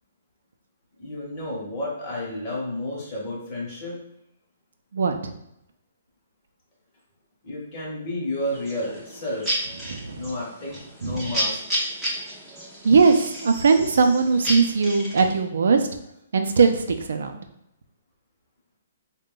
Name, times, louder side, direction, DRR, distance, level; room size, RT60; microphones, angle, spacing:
voice 1, 1.0-4.0 7.4-9.6 10.2-11.8, left 1 dB, 20° left, -4 dB, 0.9 m, -31 dB
voice 2, 4.9-5.3 9.9-10.3 11.0-11.2 12.8-15.9 16.3-17.4, right 5 dB, 65° right, 6 dB, 0.5 m, -20 dB
sound 1, 8.5-15.4, equal, ahead, 0.5 m, -32 dB
3.7 x 2.2 x 3.8 m, 0.79 s
hypercardioid pair, 180°, 0 cm